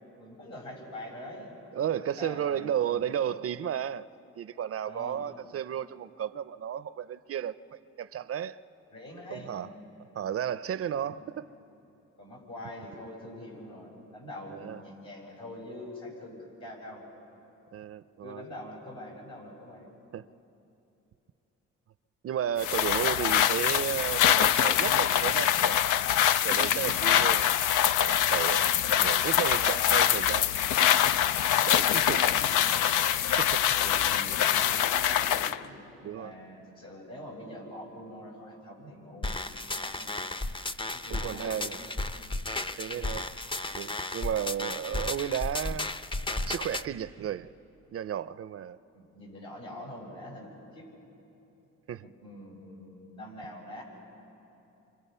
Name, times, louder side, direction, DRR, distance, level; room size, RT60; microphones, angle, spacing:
voice 1, 0.0-1.5 2.0-3.3 4.8-5.2 8.9-9.9 11.0-11.2 12.2-17.0 18.2-19.9 23.0-23.3 28.6-29.0 29.6-30.1 31.8-32.8 33.7-35.8 36.0-40.2 40.9-41.6 42.9-43.1 48.9-50.9 52.0-53.8, left 1 dB, 70° left, 7.9 m, -44 dB
voice 2, 1.7-4.0 4.4-8.6 9.3-9.7 10.1-11.5 14.5-14.8 17.7-18.4 20.1-20.3 22.2-25.8 26.4-27.5 28.0-30.5 31.6-32.2 33.4-33.6 36.0-36.3 41.1-41.8 42.8-43.3 43.7-45.9 46.5-47.5 47.9-48.8 51.9-52.1, right 9 dB, 50° right, 0.5 m, -33 dB
sound 1, 22.6-35.6, left 10 dB, 85° left, 0.5 m, -24 dB
sound 2, 39.2-46.8, left 2 dB, 15° left, 0.6 m, -34 dB
30.0 x 25.5 x 5.5 m
cardioid pair, 90°, 30 cm